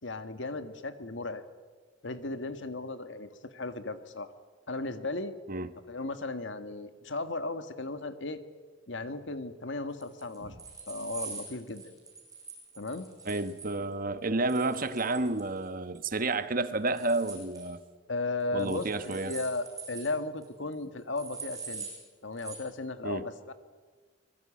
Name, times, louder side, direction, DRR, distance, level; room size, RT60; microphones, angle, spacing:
voice 1, 0.0-1.4 2.0-4.3 4.7-5.3 5.9-8.4 8.9-10.5 10.9-11.9 12.8-13.1 18.1-21.9 22.2-23.5, left 2 dB, 85° left, 1.8 m, -36 dB
sound 1, 10.0-13.7 14.5-15.7 15.9-16.3 16.6-17.7 18.6-20.1 20.4-20.5 20.7-20.8 21.2-22.0 22.4-22.6, right 5 dB, 20° right, 7.2 m, -44 dB
voice 2, 13.2-17.8 18.5-19.4 23.0-23.3, right 2 dB, 50° right, 1.3 m, -30 dB
24.5 x 22.0 x 8.6 m
head